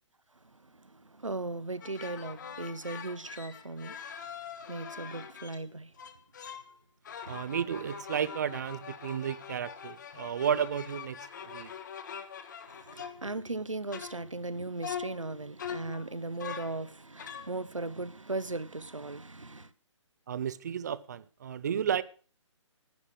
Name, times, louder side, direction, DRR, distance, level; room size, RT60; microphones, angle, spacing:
voice 1, 0.3-5.9 7.2-7.5 12.7-19.7, right 2 dB, 80° right, 1.1 m, -38 dB
sound 1, 1.8-5.6 6.0-6.7 7.0-13.6 13.9-14.5 14.8-16.8 17.2-17.5, left 7 dB, 35° left, 1.4 m, -43 dB
voice 2, 7.3-11.7 20.3-22.0, right 8 dB, 35° right, 0.6 m, -33 dB
11.5 x 9.7 x 6.3 m
figure-of-eight pair, 140°, 16 cm